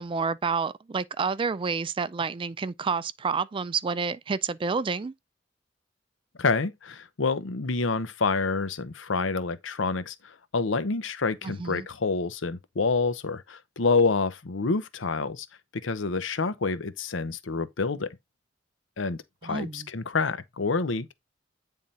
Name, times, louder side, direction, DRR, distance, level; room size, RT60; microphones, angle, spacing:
voice 1, 0.0-5.1 11.4-11.9 19.4-19.9, right 5 dB, 25° right, 0.4 m, -29 dB
voice 2, 6.4-15.5 15.8-18.2 19.0-21.1, left 4 dB, 90° left, 0.8 m, -28 dB
8.9 x 3.7 x 4.1 m
head